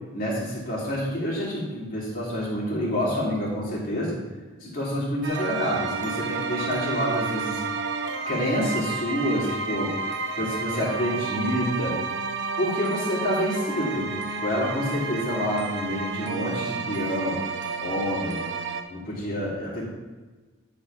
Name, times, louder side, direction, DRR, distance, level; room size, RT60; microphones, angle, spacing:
voice 1, 0.1-4.2 4.6-7.6 8.3-10.0 10.3-12.0 12.6-14.1 14.4-17.4 17.8-18.4 18.9-19.9, equal, 40° left, -6 dB, 2.7 m, -28 dB
sound 1, 5.2-18.8, right 4 dB, 55° right, 0.8 m, -31 dB
11.0 x 4.3 x 5.5 m, 1.3 s
head